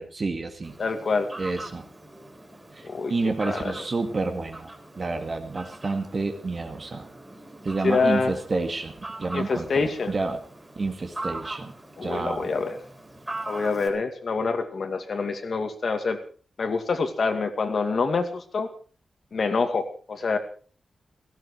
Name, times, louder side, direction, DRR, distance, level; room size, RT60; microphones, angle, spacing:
voice 1, 0.0-0.7 1.4-1.9 2.7-4.7 5.0-7.1 7.6-8.9 9.2-10.4 10.8-11.7 12.0-12.5, right 3 dB, 35° right, 5 dB, 1.9 m, -29 dB
Fowl, 0.6-13.9, right 2 dB, 10° right, 4.0 m, -41 dB
voice 2, 0.8-1.3 2.8-3.1 3.4-3.7 7.8-8.3 9.3-10.1 12.0-12.8 13.5-16.2 16.6-18.7 19.3-20.4, left 4 dB, 50° left, 7 dB, 2.3 m, -26 dB
17.0 x 16.0 x 4.8 m, 0.40 s
wide cardioid pair, 180°, 0 cm